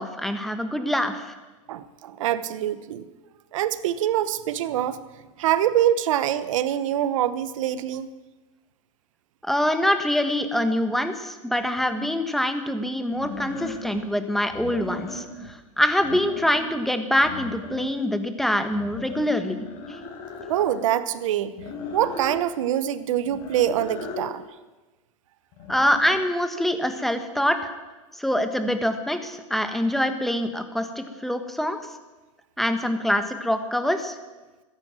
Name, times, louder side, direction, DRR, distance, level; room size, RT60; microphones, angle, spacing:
voice 1, 0.0-1.3 9.4-20.0 25.7-27.7 28.1-31.8 32.6-34.1, left 1 dB, ahead, 8 dB, 1.3 m, -25 dB
voice 2, 1.7-3.0 3.5-5.0 5.4-8.1 20.5-21.5 21.9-24.4, right 11 dB, 75° right, 15 dB, 1.0 m, -24 dB
sound 1, 11.7-11.8 13.1-14.0 14.5-15.5 15.9-16.8 17.2-18.2 18.7-20.8 21.6-22.4 23.2-24.3 25.5-26.2, left 4 dB, 55° left, 4.4 m, -38 dB
13.5 x 10.5 x 7.6 m, 1.2 s
hypercardioid pair, 120°, 17 cm